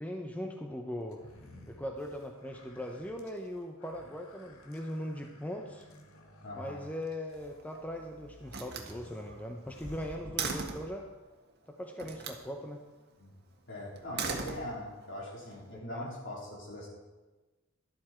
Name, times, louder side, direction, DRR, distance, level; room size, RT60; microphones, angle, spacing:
voice 1, 0.0-1.2 1.7-5.8 6.5-11.1 11.8-12.8 15.7-16.1, equal, 5° left, 2 dB, 0.8 m, -40 dB
sound 1, 1.1-10.8, left 1 dB, 80° left, 1.8 m, -56 dB
voice 2, 6.4-6.8 10.2-10.4 13.2-13.3 13.7-16.9, left 1 dB, 60° left, -3 dB, 4.0 m, -41 dB
Slam, 7.4-8.0 8.5-11.0 12.0-12.5 14.0-15.1, right 5 dB, 50° right, 1.5 m, -39 dB
12.5 x 12.0 x 4.4 m, 1.2 s
head